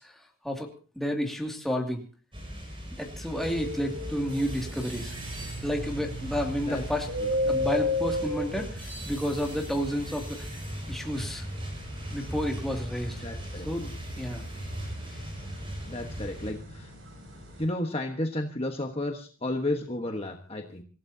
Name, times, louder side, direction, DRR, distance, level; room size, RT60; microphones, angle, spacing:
voice 1, 0.0-2.0 2.9-5.2 5.6-7.1 7.4-10.5 10.9-11.4 12.1-13.2 13.6-13.9 14.2-14.4 15.1-15.2, equal, ahead, 1 dB, 2.4 m, -31 dB
sound 1, 2.3-16.5, equal, 25° right, 5.9 m, -39 dB
sound 2, 3.3-17.6, left 1 dB, 65° right, 6.8 m, -35 dB
voice 2, 13.2-13.7 15.9-16.9 17.6-20.8, left 1 dB, 30° left, 3 dB, 1.3 m, -32 dB
26.5 x 16.0 x 2.8 m, 0.38 s
head